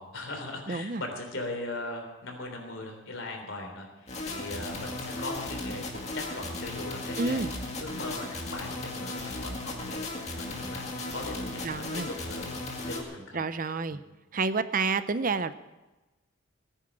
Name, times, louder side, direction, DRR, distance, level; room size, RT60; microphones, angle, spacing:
voice 1, 0.0-7.5 7.8-12.6 12.9-13.4 13.9-14.0, left 2 dB, 65° left, 3 dB, 3.6 m, -39 dB
voice 2, 0.7-1.0 7.2-7.5 11.6-12.1 13.3-14.0 14.3-15.5, right 4 dB, 40° right, 13 dB, 0.6 m, -29 dB
sound 1, 4.1-13.0, left 2 dB, 30° left, 2.1 m, -36 dB
18.5 x 10.0 x 6.2 m, 1.1 s
head